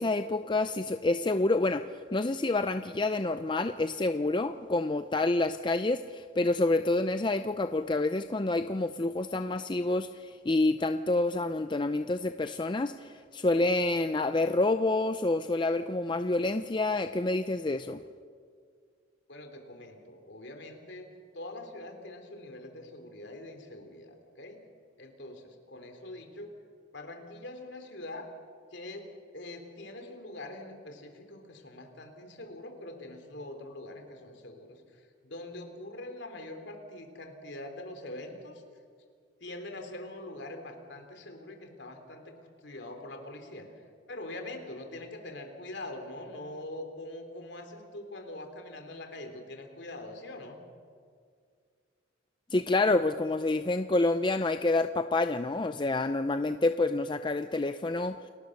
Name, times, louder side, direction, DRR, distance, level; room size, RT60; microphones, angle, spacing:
voice 1, 0.0-1.8 2.1-18.0 52.5-58.2, left 2 dB, 25° left, 9 dB, 0.5 m, -28 dB
voice 2, 19.3-21.1 21.3-24.6 25.0-26.5 26.9-28.3 28.7-29.1 29.3-38.6 39.4-43.7 44.1-50.6, left 1 dB, 65° left, 5 dB, 3.5 m, -43 dB
29.5 x 18.5 x 6.6 m, 2.1 s
head